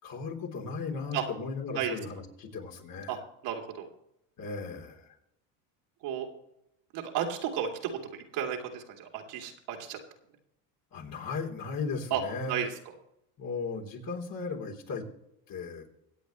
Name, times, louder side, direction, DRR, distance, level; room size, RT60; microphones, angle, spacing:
voice 1, 0.0-3.2 4.4-5.1 10.9-12.5 13.4-15.0 15.5-15.9, left 4 dB, 45° left, 1 dB, 3.5 m, -36 dB
voice 2, 3.4-3.9 6.0-6.3 6.9-10.0 12.1-12.2 12.5-12.7, right 9 dB, 65° right, 1 dB, 2.9 m, -33 dB
24.5 x 8.4 x 3.1 m, 0.82 s
supercardioid pair, 90°, 46 cm